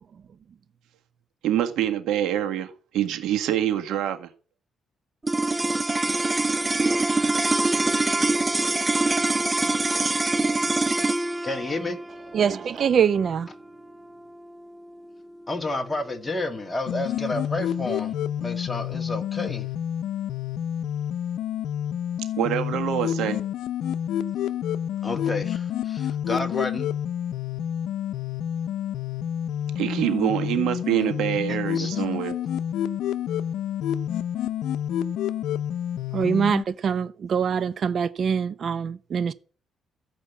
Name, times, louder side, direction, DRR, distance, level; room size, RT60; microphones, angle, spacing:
voice 1, 1.4-4.3 22.4-23.4 29.7-32.3, right 11 dB, 85° right, 1.7 m, -25 dB
sound 1, 5.2-15.7, right 2 dB, 20° right, 0.5 m, -25 dB
voice 2, 11.4-12.0 15.5-19.7 25.0-26.9 31.5-31.9, left 2 dB, 20° left, 2.2 m, -30 dB
voice 3, 12.3-13.5 36.1-39.3, right 7 dB, 55° right, 0.7 m, -24 dB
sound 2, 16.9-36.6, left 10 dB, 85° left, 0.7 m, -29 dB
14.0 x 5.3 x 8.3 m
cardioid pair, 90°, 0 cm